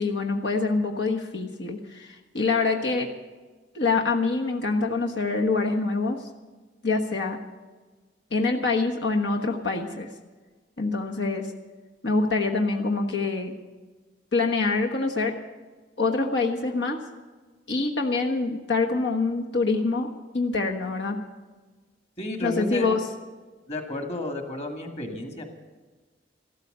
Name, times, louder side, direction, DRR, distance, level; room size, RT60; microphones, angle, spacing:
voice 1, 0.0-3.1 3.7-6.2 6.8-7.4 8.3-10.1 10.8-11.5 12.0-13.5 14.3-15.3 16.0-17.0 17.7-20.1 20.3-21.2 22.4-23.0, left 3 dB, 80° left, 2 dB, 1.3 m, -25 dB
voice 2, 22.2-22.9 23.7-25.4, left 1 dB, 35° left, 5 dB, 2.2 m, -32 dB
14.0 x 13.0 x 6.7 m, 1.3 s
head